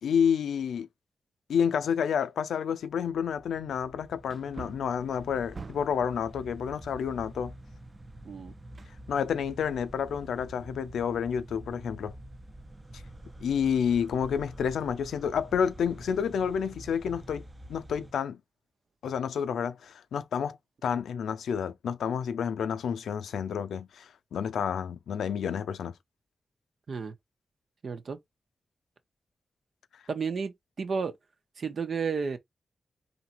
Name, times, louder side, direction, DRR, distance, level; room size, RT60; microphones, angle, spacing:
voice 1, 0.0-0.9 1.5-7.5 9.1-12.1 13.4-17.4 17.7-18.4 19.0-20.6 20.8-25.9, left 7 dB, 85° left, 0.5 m, -29 dB
Wood, 2.2-2.3 2.9-3.0 4.2-6.1 8.7-9.5 9.9-10.0, right 4 dB, 50° right, 0.5 m, -45 dB
sound 1, 2.9-18.1, right 1 dB, 30° right, 0.9 m, -47 dB
voice 2, 27.8-28.2 30.1-31.1 31.6-32.4, right 5 dB, 65° right, 1.1 m, -32 dB
4.1 x 2.8 x 4.4 m
supercardioid pair, 40°, 0 cm